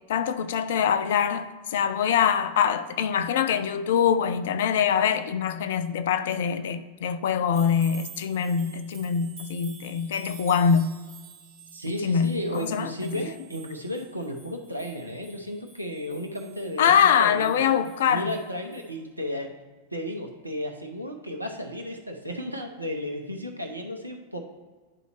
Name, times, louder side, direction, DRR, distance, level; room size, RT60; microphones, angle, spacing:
voice 1, 0.1-10.9 12.0-13.1 16.8-18.3, left 7 dB, 55° left, 0.4 m, -24 dB
sound 1, 7.5-18.5 18.7-18.9, right 5 dB, 50° right, 2.0 m, -49 dB
voice 2, 11.7-19.6 19.9-24.4, equal, 85° right, 0.7 m, -34 dB
11.0 x 4.0 x 3.0 m
figure-of-eight pair, 90°, 0 cm